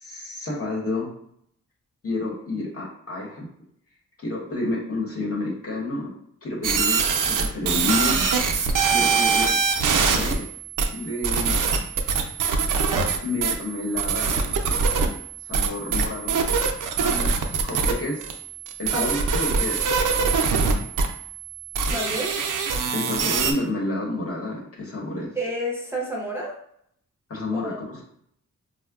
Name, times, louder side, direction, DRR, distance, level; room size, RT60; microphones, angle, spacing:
voice 1, 0.0-1.1 2.0-3.5 4.2-6.1 6.4-8.3 8.9-10.5 10.9-11.5 13.2-14.5 15.5-16.4 17.0-18.4 18.8-19.9 22.9-25.3 27.3-28.0, left 2 dB, 50° left, -2 dB, 1.0 m, -30 dB
sound 1, 6.6-23.5, right 5 dB, 80° right, 0.5 m, -24 dB
voice 2, 18.9-19.3 21.9-22.3 25.3-26.5 27.5-27.8, equal, 10° right, -4 dB, 0.6 m, -30 dB
4.5 x 2.1 x 2.3 m, 0.69 s
wide cardioid pair, 115°, 31 cm